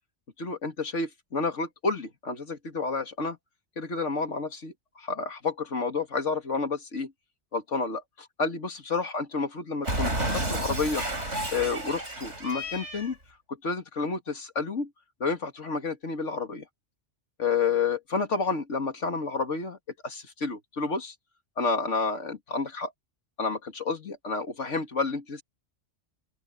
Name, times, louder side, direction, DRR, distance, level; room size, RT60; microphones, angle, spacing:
voice 1, 0.4-3.4 3.8-7.1 7.5-11.0 11.5-13.2 13.5-14.9 15.2-16.7 17.4-19.8 20.0-21.1 21.6-22.9 23.4-25.4, left 4 dB, 75° left, 2.4 m, -30 dB
Cat, 9.8-13.1, right 1 dB, 70° right, 6.2 m, -31 dB
open air
omnidirectional pair, 1.2 m